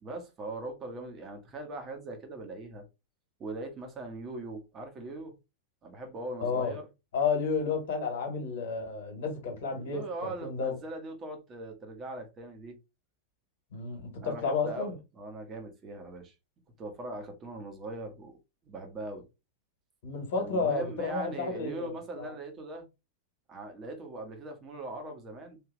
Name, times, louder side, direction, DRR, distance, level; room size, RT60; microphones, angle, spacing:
voice 1, 0.0-2.8 3.4-5.3 5.8-6.9 9.7-12.7 14.2-16.3 16.8-18.4 18.6-19.3 20.4-22.9 23.5-25.6, right 2 dB, 25° right, 1.2 m, -40 dB
voice 2, 6.4-6.7 7.1-10.7 13.7-14.9 20.0-22.3, left 4 dB, 55° left, 1.5 m, -31 dB
3.4 x 2.8 x 3.2 m
figure-of-eight pair, 90°, 0 cm